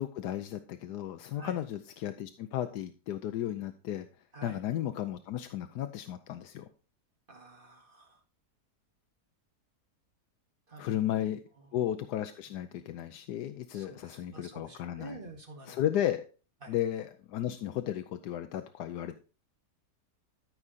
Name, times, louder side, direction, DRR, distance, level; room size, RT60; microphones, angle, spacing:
voice 1, 0.0-4.1 4.4-6.6 10.8-11.4 11.7-15.2 15.7-16.2 16.7-19.3, left 11 dB, 90° left, 8 dB, 1.3 m, -34 dB
voice 2, 7.3-8.2 10.7-11.1 11.6-11.8 12.5-12.6 13.7-15.8 16.6-16.8, right 2 dB, 35° right, 2 dB, 2.1 m, -49 dB
13.5 x 4.9 x 4.2 m, 0.35 s
omnidirectional pair, 1.7 m